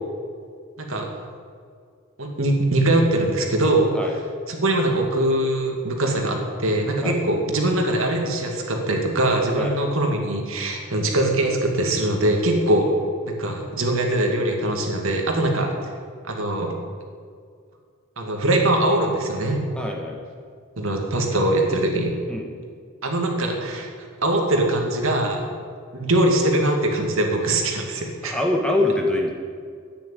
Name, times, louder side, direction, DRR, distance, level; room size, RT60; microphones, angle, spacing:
voice 1, 0.8-1.1 2.2-3.9 4.5-12.9 13.2-15.7 16.2-16.7 18.2-19.6 20.8-22.1 23.0-25.5 25.9-28.4, right 1 dB, 65° right, 2 dB, 2.4 m, -22 dB
voice 2, 9.6-9.9 15.6-15.7 19.7-20.2 22.3-22.5 28.2-29.3, left 1 dB, 5° left, 1 dB, 1.4 m, -24 dB
11.0 x 10.0 x 9.2 m, 2.1 s
head